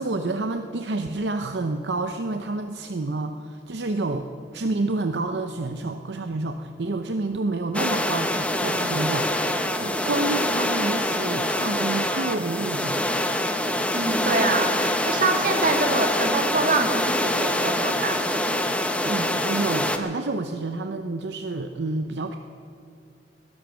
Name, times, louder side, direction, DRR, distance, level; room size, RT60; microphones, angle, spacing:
voice 1, 0.0-13.0 19.0-22.4, right 2 dB, 75° right, 7 dB, 0.7 m, -29 dB
sound 1, 7.7-20.0, left 1 dB, 5° left, 0.9 m, -25 dB
voice 2, 13.9-18.2, right 3 dB, 50° right, 3 dB, 2.1 m, -25 dB
19.5 x 11.0 x 6.4 m, 2.5 s
head